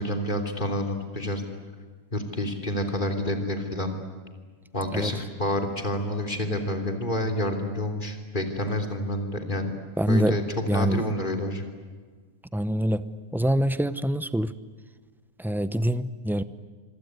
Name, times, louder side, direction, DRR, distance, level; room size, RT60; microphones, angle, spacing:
voice 1, 0.0-1.4 2.1-4.0 4.7-9.7 10.1-10.4 10.7-11.6, left 1 dB, 30° left, 5 dB, 3.4 m, -28 dB
voice 2, 10.0-10.4 10.7-11.0 12.5-14.5 15.4-16.4, equal, ahead, 14 dB, 0.5 m, -25 dB
26.0 x 24.0 x 9.6 m, 1.5 s
omnidirectional pair, 1.5 m